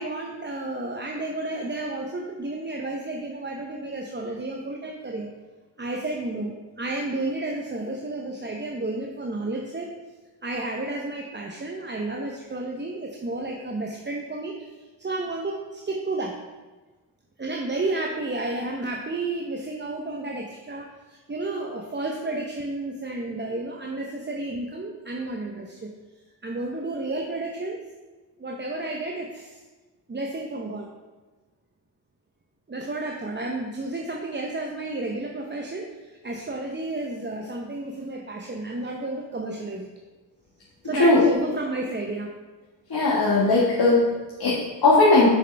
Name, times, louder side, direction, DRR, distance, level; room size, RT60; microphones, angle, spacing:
voice 1, 0.0-5.3 5.8-9.9 10.4-14.7 15.0-16.4 17.4-25.9 26.4-27.8 28.4-29.6 30.1-30.9 32.7-39.9 40.8-42.3, right 2 dB, 25° right, 1 dB, 0.8 m, -31 dB
voice 2, 42.9-45.3, left 2 dB, 55° left, -7 dB, 1.7 m, -19 dB
6.8 x 6.4 x 3.4 m, 1.2 s
cardioid pair, 55°, 46 cm